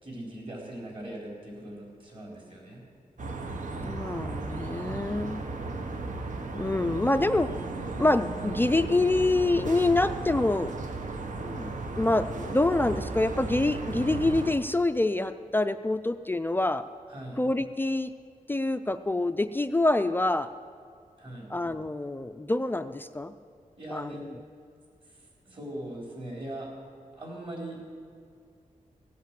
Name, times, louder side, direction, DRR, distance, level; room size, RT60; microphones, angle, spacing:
voice 1, 0.0-2.8 17.1-17.4 21.2-21.5 23.8-24.2 25.0-26.7 27.1-28.0, right 1 dB, 40° right, -2 dB, 4.2 m, -40 dB
sound 1, 3.2-14.5, right 3 dB, 70° right, 1.2 m, -35 dB
voice 2, 3.8-5.4 6.5-7.5 7.9-10.7 11.4-16.9 17.4-18.1 18.5-20.5 21.5-23.3 23.9-24.1, left 2 dB, 15° left, 10 dB, 0.4 m, -26 dB
17.0 x 8.4 x 7.6 m, 2.3 s
wide cardioid pair, 135°, 14 cm